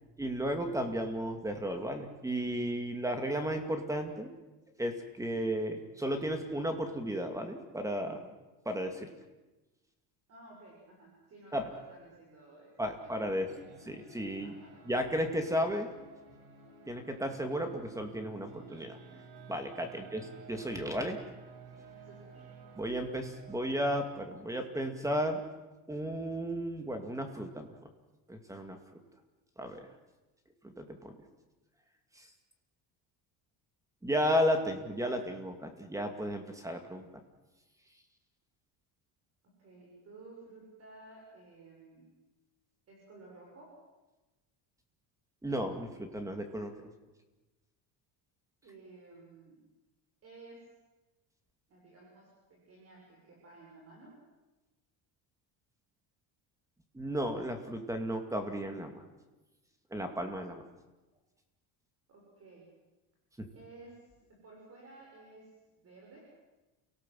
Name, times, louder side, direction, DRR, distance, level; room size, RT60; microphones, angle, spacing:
voice 1, 0.2-4.3 4.8-8.2 8.7-9.1 11.5-11.7 12.8-13.5 13.9-14.5 14.9-15.9 16.9-19.0 19.5-20.2 20.5-21.2 22.8-25.4 25.9-27.7 28.3-28.8 29.6-29.8 30.6-31.2 32.2-32.3 34.0-37.1 45.4-46.9 56.9-59.0 59.9-60.6, equal, 5° right, 6 dB, 2.3 m, -34 dB
voice 2, 10.3-13.6 14.4-14.7 19.9-20.2 22.0-22.5 39.6-42.0 42.9-43.7 48.6-49.6 50.2-50.6 51.7-54.1 62.1-62.6 63.5-64.0 64.3-65.5 65.8-66.3, right 3 dB, 35° right, -2 dB, 6.4 m, -54 dB
sound 1, 13.5-24.1, right 4 dB, 70° right, 4.6 m, -53 dB
29.5 x 18.5 x 7.6 m, 1.1 s
cardioid pair, 165°, 42 cm